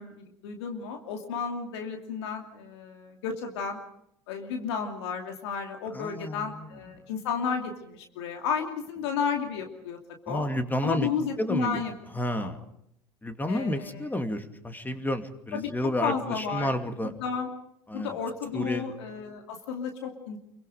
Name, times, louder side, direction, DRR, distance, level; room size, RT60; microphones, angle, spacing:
voice 1, 0.0-3.8 4.3-10.0 10.3-10.5 10.8-11.9 12.3-12.5 13.5-14.0 15.5-16.7 17.0-17.5 17.9-20.4, left 6 dB, 70° left, 3 dB, 2.6 m, -32 dB
voice 2, 5.9-6.7 10.3-11.1 11.4-11.8 12.1-12.6 13.2-17.1 17.9-18.1 18.5-18.9, left 1 dB, 10° left, 8 dB, 2.5 m, -31 dB
27.0 x 23.5 x 5.1 m, 0.75 s
hypercardioid pair, 70°, 14 cm